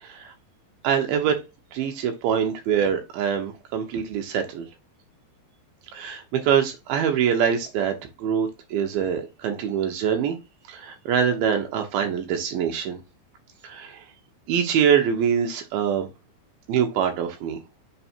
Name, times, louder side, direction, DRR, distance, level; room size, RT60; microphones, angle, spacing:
voice 1, 0.8-1.3 1.7-4.6 5.9-10.4 10.7-13.0 13.7-13.9 14.5-16.1 16.7-17.6, right 8 dB, 80° right, 2.1 m, -24 dB
6.8 x 3.3 x 4.4 m
omnidirectional pair, 5.5 m